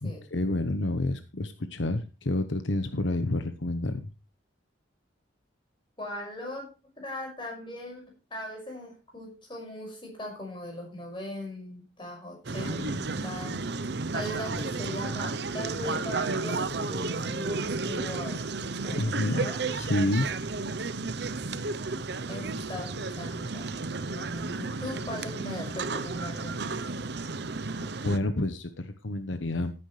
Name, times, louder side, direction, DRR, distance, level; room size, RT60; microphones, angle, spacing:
voice 1, 0.0-4.0 18.9-20.3 27.7-29.7, left 2 dB, 75° left, 9 dB, 1.0 m, -29 dB
voice 2, 6.0-6.7 7.0-8.0 8.3-13.6 14.1-18.4 18.8-19.0 19.3-19.6 22.3-26.6, left 1 dB, 25° left, 1 dB, 6.0 m, -39 dB
sound 1, 12.4-28.2, right 3 dB, 60° right, 0.8 m, -32 dB
15.0 x 9.9 x 3.3 m, 0.30 s
head